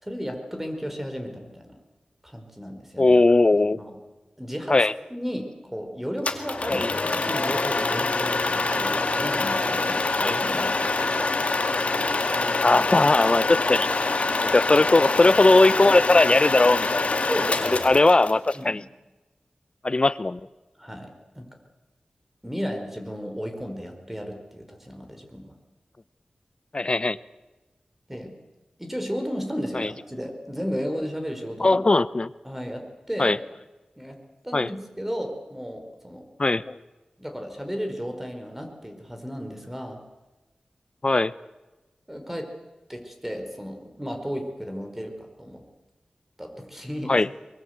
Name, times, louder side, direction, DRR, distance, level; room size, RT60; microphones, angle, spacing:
voice 1, 0.0-1.8 2.2-3.1 3.7-4.0 4.4-4.8 5.1-11.3 17.2-17.8 18.5-18.8 20.8-21.4 22.4-25.5 28.1-28.3 28.8-31.8 32.4-33.4 34.0-34.2 34.4-36.3 37.2-40.0 42.1-42.5 42.9-45.6 46.4-47.1, equal, 10° right, 5 dB, 4.8 m, -34 dB
voice 2, 3.0-3.8 4.7-4.9 6.7-6.9 10.2-10.4 12.4-13.9 14.1-17.0 17.7-18.8 19.8-20.4 26.7-27.2 29.7-29.9 31.6-32.3 33.2-33.4 34.5-34.7 36.4-36.8 41.0-41.3 47.1-47.3, left 2 dB, 40° left, 17 dB, 0.8 m, -19 dB
sound 1, 6.2-18.6, left 3 dB, 60° left, 2.1 m, -25 dB
23.0 x 22.0 x 8.1 m, 1.1 s
wide cardioid pair, 55°, 3 cm